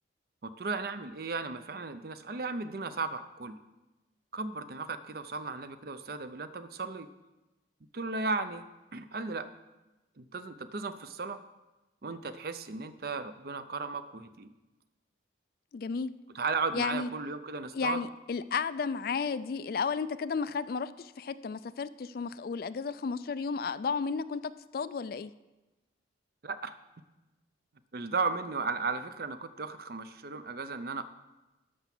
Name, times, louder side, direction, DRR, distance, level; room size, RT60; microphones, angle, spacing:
voice 1, 0.4-3.6 4.3-7.1 7.9-8.6 8.9-9.5 10.2-11.4 12.0-14.5 16.3-18.0 26.4-26.8 27.9-31.0, right 4 dB, 50° right, 11 dB, 0.6 m, -35 dB
voice 2, 15.7-16.1 16.7-17.1 17.7-25.3, left 5 dB, 50° left, 15 dB, 0.3 m, -33 dB
12.5 x 5.8 x 6.1 m, 1.1 s
head